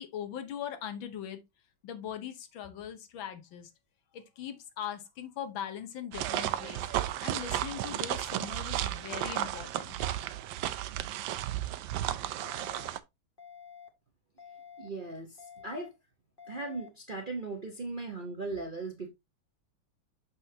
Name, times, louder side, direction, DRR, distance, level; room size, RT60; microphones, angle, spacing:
voice 1, 0.0-1.4 1.8-3.7 4.1-6.8 7.2-10.0, left 9 dB, 80° left, 1.7 m, -40 dB
sound 1, 6.1-13.0, right 13 dB, 75° right, 1.3 m, -33 dB
sound 2, 12.4-12.9 13.4-13.9 14.4-14.9 15.4-15.9 16.4-16.9, left 7 dB, 30° left, 1.3 m, -49 dB
voice 2, 14.8-15.9 16.5-19.1, right 3 dB, 40° right, 0.7 m, -38 dB
6.6 x 6.2 x 2.7 m
omnidirectional pair, 2.1 m